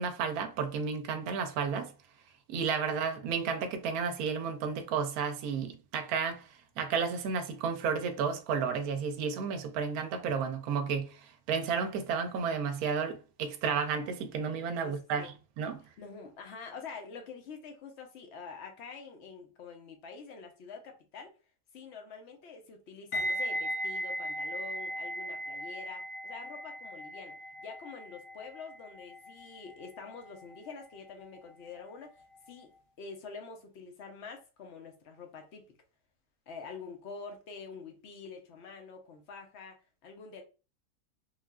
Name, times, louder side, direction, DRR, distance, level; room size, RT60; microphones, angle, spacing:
voice 1, 0.0-1.9 2.5-6.4 6.8-11.2 11.5-15.8, right 6 dB, 80° right, 1.0 m, -32 dB
voice 2, 14.8-15.3 16.0-21.3 21.7-32.7 33.0-35.7 36.5-40.4, left 5 dB, 60° left, 0.8 m, -46 dB
sound 1, 23.1-32.1 32.3-32.6, equal, 75° left, 0.5 m, -38 dB
3.3 x 2.4 x 2.3 m
omnidirectional pair, 1.6 m